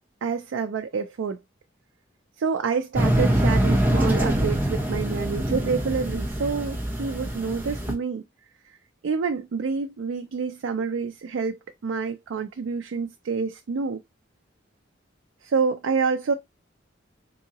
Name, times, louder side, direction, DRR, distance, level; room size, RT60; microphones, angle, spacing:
voice 1, 0.2-1.4 2.4-8.2 9.0-14.0 15.4-16.3, right 5 dB, 85° right, 0.4 m, -28 dB
sound 1, 2.9-7.9, right 1 dB, 10° right, 0.7 m, -24 dB
3.8 x 2.7 x 2.8 m
head